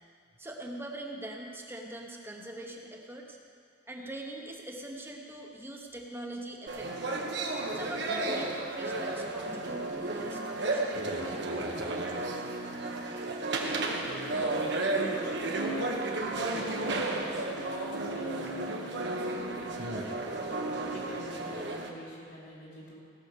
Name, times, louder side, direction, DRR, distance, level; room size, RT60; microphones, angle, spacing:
voice 1, 0.4-3.4 3.9-7.2 7.5-11.0, right 1 dB, 15° right, 0 dB, 1.0 m, -42 dB
sound 1, 6.7-21.9, right 2 dB, 65° right, 1.3 m, -33 dB
voice 2, 13.8-15.9 16.4-17.6 17.9-20.4 20.9-23.0, equal, 80° left, -6 dB, 3.8 m, -46 dB
17.5 x 6.1 x 6.7 m, 2.4 s
head